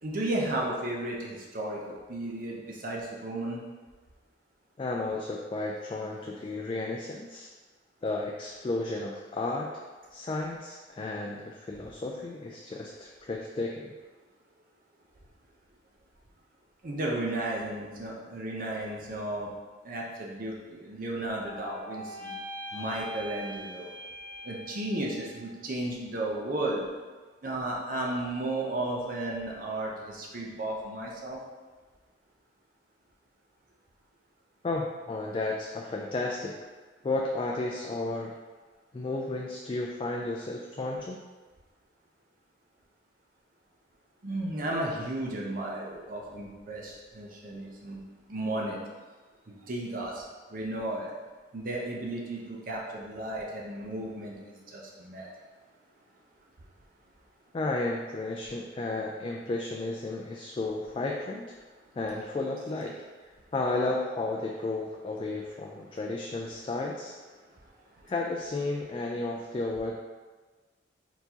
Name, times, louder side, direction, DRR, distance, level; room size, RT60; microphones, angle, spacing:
voice 1, 0.0-3.6 16.8-19.5 19.8-22.3 22.7-23.9 24.4-26.9 27.4-31.4 44.2-48.0 48.3-48.8 49.5-50.2 50.5-51.1 51.5-55.3, right 1 dB, 50° right, -2 dB, 0.7 m, -34 dB
voice 2, 4.8-7.5 8.0-9.7 10.1-13.9 34.6-36.5 37.0-38.3 38.9-41.2 57.5-61.5 61.9-63.0 63.5-67.1 68.1-70.0, left 2 dB, 30° left, -1 dB, 0.3 m, -33 dB
sound 1, 21.0-25.3, left 1 dB, 10° left, 0.8 m, -42 dB
4.4 x 4.0 x 2.8 m, 1.3 s
head